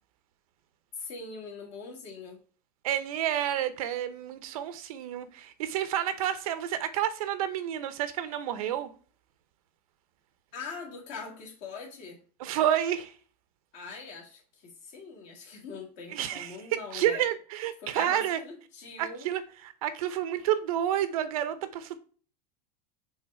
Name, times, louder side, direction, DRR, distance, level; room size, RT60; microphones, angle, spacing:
voice 1, 1.0-2.4 10.5-12.2 13.7-17.2 17.8-19.3, left 4 dB, 35° left, 1.7 m, -42 dB
voice 2, 2.8-8.9 12.4-13.1 16.1-18.4 19.0-19.4 19.8-22.0, right 11 dB, 60° right, 0.8 m, -29 dB
5.6 x 3.5 x 4.7 m
supercardioid pair, 170°, 20 cm